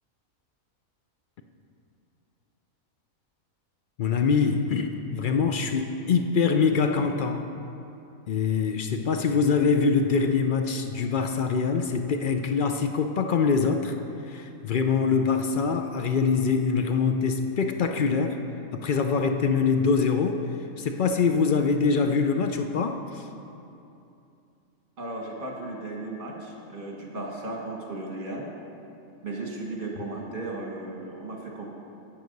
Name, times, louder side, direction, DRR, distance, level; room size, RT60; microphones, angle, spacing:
voice 1, 4.0-7.5 8.3-14.0 14.3-18.4 18.7-20.4 20.8-23.2, left 5 dB, 60° left, 6 dB, 0.5 m, -24 dB
voice 2, 25.0-28.5 29.2-31.7, right 2 dB, 40° right, -1 dB, 1.6 m, -35 dB
11.0 x 7.7 x 5.3 m, 2.7 s
omnidirectional pair, 1.4 m